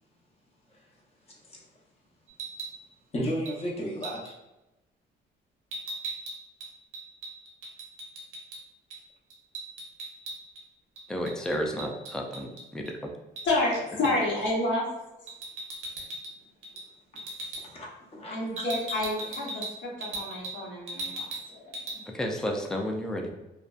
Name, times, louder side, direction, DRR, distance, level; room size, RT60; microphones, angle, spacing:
voice 1, 1.3-1.6 3.1-4.3 17.1-17.2 17.7-17.9 18.1-19.0, equal, 30° left, -3 dB, 0.7 m, -34 dB
sound 1, 2.3-2.8 3.5-3.6 4.0-4.3 5.7-8.6 8.9-9.0 9.3-10.6 11.0-12.9 13.4-13.5 14.0-14.3 15.3-16.3 16.6-16.9 17.2-17.6 18.6-20.6 20.9-21.5 21.7-22.0, right 2 dB, 80° right, 0.6 m, -38 dB
voice 2, 11.1-13.0 22.1-23.3, equal, 5° left, 2 dB, 0.3 m, -31 dB
voice 3, 13.4-14.9 18.3-21.7, left 2 dB, 70° left, -5 dB, 0.9 m, -29 dB
2.5 x 2.1 x 2.3 m, 0.97 s
cardioid pair, 90°, 20 cm